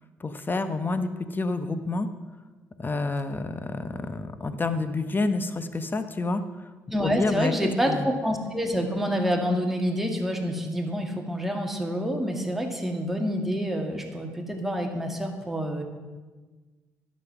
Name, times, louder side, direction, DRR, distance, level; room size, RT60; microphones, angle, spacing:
voice 1, 0.2-2.1 2.8-6.4 7.0-8.1, left 3 dB, 30° left, 10 dB, 0.9 m, -28 dB
voice 2, 6.9-15.8, equal, 5° right, 1 dB, 2.1 m, -27 dB
10.5 x 7.5 x 6.0 m, 1.3 s
supercardioid pair, 60°, 7 cm